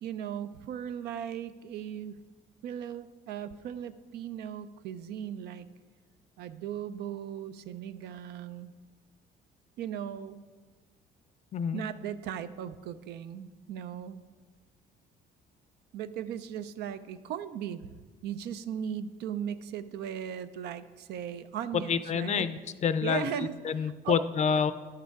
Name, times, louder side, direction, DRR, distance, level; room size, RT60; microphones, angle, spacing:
voice 1, 0.0-2.2 2.6-5.7 6.4-8.7 9.8-10.4 11.7-14.2 15.9-17.9 18.2-22.5 23.0-24.3, right 9 dB, 75° right, 12 dB, 0.5 m, -37 dB
voice 2, 11.5-11.8 21.9-24.7, left 7 dB, 45° left, 13 dB, 0.4 m, -28 dB
11.0 x 6.7 x 4.7 m, 1.4 s
cardioid pair, 110°, 17 cm